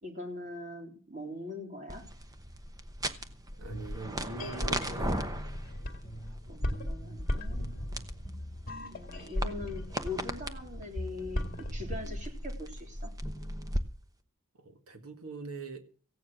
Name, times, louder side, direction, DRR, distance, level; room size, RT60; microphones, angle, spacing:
voice 1, 0.0-2.0 6.5-7.7 8.9-11.5 11.7-13.1, left 2 dB, 35° right, 2 dB, 3.7 m, -42 dB
sound 1, 1.9-13.8, right 1 dB, 15° right, 1.0 m, -39 dB
sound 2, 3.5-12.3, left 1 dB, 40° left, 2.2 m, -37 dB
voice 2, 3.6-5.5 14.5-15.9, right 2 dB, 85° right, 7 dB, 2.0 m, -43 dB
16.0 x 9.7 x 6.2 m, 0.41 s
head